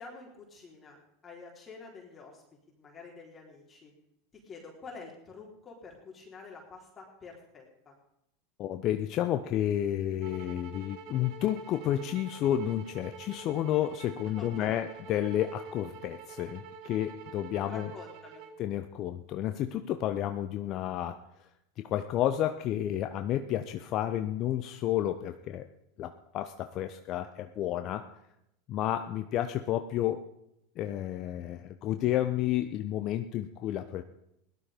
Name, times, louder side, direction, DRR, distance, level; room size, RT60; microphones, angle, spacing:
voice 1, 0.0-2.4 2.8-3.9 4.4-7.9 14.4-14.8 17.7-18.4, left 4 dB, 25° left, -2 dB, 3.9 m, -48 dB
voice 2, 8.6-17.9 18.6-21.2 21.8-25.7 26.0-28.1 28.7-30.3 30.8-34.0, left 12 dB, 45° left, 8 dB, 0.9 m, -31 dB
sound 1, 10.2-18.6, right 5 dB, 55° right, 1.7 m, -47 dB
17.0 x 12.0 x 5.3 m, 0.80 s
hypercardioid pair, 95°, 0 cm